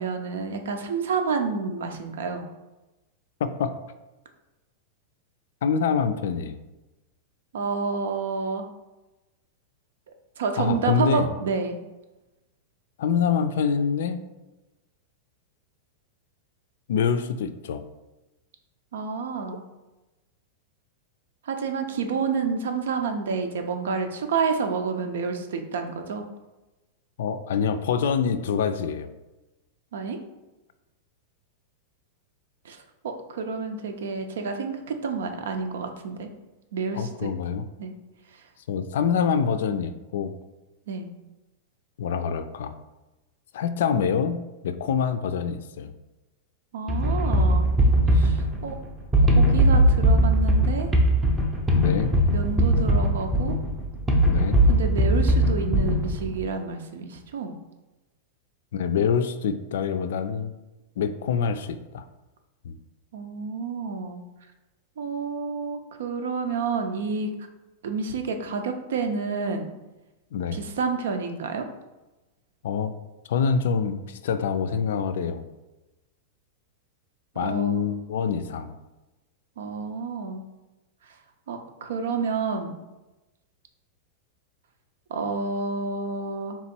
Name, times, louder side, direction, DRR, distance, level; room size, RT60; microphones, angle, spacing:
voice 1, 0.0-2.4 7.5-8.6 10.4-11.8 18.9-19.6 21.4-26.2 29.9-30.2 32.6-36.3 36.7-37.3 37.8-37.9 40.9-41.1 46.7-47.7 48.1-48.8 49.2-50.9 52.3-53.6 54.7-57.5 63.1-64.2 65.0-67.3 67.8-69.7 70.5-71.7 77.4-77.8 79.6-80.4 81.5-82.8 85.1-86.6, right 5 dB, 85° right, 6 dB, 0.6 m, -29 dB
voice 2, 3.4-3.8 5.6-6.6 10.6-11.3 13.0-14.2 16.9-17.8 27.2-29.1 36.9-37.6 38.7-40.3 42.0-42.8 43.5-44.4 44.6-45.9 51.7-52.2 54.2-54.6 58.7-60.5 61.0-62.0 62.6-62.8 70.3-70.6 72.6-73.0 73.3-75.4 77.4-78.8, left 6 dB, 75° left, 11 dB, 0.4 m, -25 dB
sound 1, 46.9-56.4, equal, 10° right, 0.5 m, -20 dB
3.6 x 3.0 x 4.4 m, 1.0 s
supercardioid pair, 165°, 0 cm